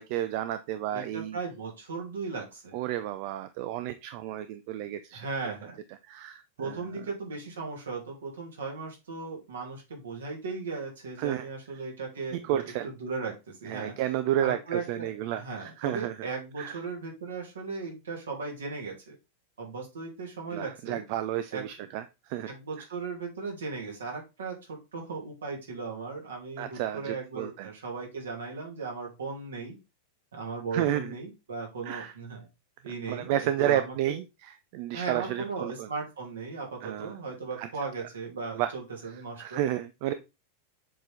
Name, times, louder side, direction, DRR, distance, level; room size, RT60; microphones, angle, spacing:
voice 1, 0.0-1.4 2.7-5.3 6.1-6.8 11.2-11.4 12.4-12.9 13.7-16.1 16.6-16.8 20.5-22.0 22.3-22.5 26.6-27.7 30.7-31.1 31.9-32.1 33.1-34.2 34.7-35.9 36.8-37.1 37.6-37.7 38.6-38.7 39.4-40.1, right 12 dB, 45° right, 12 dB, 0.5 m, -31 dB
voice 2, 0.9-2.8 5.1-5.8 6.6-13.9 14.4-19.2 19.6-21.0 21.5-21.7 22.5-29.8 30.3-32.5 32.8-34.2 34.9-39.6 40.1-40.2, right 4 dB, 65° right, 0 dB, 2.5 m, -37 dB
7.4 x 4.4 x 3.4 m, 0.25 s
figure-of-eight pair, 90°, 0 cm